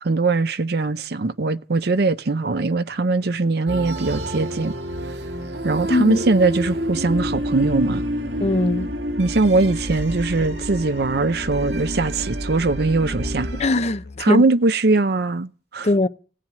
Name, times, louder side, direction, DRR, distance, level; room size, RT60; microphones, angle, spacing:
voice 1, 0.0-4.7 5.6-8.0 9.2-13.5 14.2-15.9, right 3 dB, 60° right, 0.7 m, -21 dB
sound 1, 3.7-13.7, equal, 85° right, 2.0 m, -28 dB
voice 2, 5.9-6.2 8.4-8.9 13.6-14.4 15.8-16.1, left 2 dB, 40° left, 0.9 m, -20 dB
Musical instrument, 6.3-14.2, left 3 dB, 65° left, 0.9 m, -41 dB
17.5 x 7.5 x 9.6 m
head